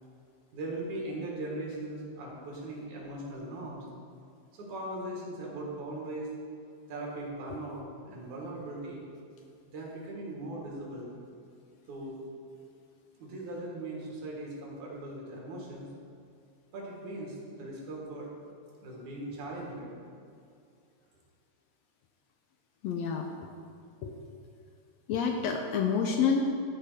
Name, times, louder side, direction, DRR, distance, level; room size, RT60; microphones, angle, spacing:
voice 1, 0.5-3.8 4.5-6.3 6.9-9.1 9.7-11.2 11.9-12.2 13.2-15.9 16.7-18.3 18.8-19.9, right 1 dB, 80° right, -3 dB, 3.1 m, -39 dB
voice 2, 22.8-23.5 24.0-24.2 25.1-26.4, left 6 dB, 80° left, 3 dB, 1.6 m, -28 dB
12.5 x 4.5 x 4.9 m, 2.4 s
omnidirectional pair, 3.4 m